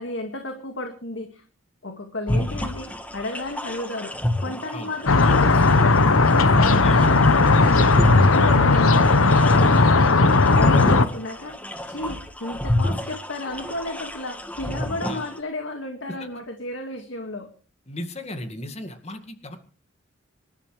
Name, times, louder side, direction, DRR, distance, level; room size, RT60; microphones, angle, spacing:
voice 1, 0.0-1.4 1.8-4.1 4.4-9.2 9.5-10.2 10.6-17.5, left 2 dB, 65° left, 4 dB, 2.0 m, -33 dB
sound 1, 2.3-15.4, left 1 dB, 5° left, 1.6 m, -29 dB
sound 2, 5.1-11.1, left 3 dB, 90° left, 1.1 m, -16 dB
voice 2, 17.9-19.6, left 1 dB, 30° left, 7 dB, 2.1 m, -35 dB
25.5 x 12.5 x 3.3 m, 0.39 s
head